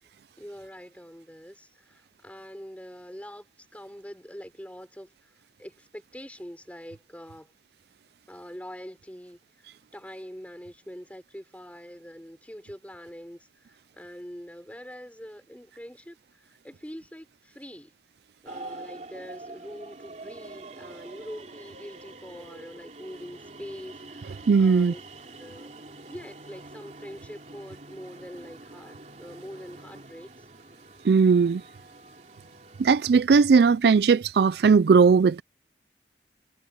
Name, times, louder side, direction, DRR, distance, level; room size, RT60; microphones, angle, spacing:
voice 1, 0.4-7.5 8.3-17.9 18.4-25.0 25.4-25.7 26.1-30.5, equal, 10° left, 5.7 m, -44 dB
sound 1, 18.5-33.1, right 2 dB, 40° right, 3.0 m, -45 dB
voice 2, 24.5-24.9 31.0-31.6 32.8-35.4, right 5 dB, 65° right, 0.4 m, -18 dB
head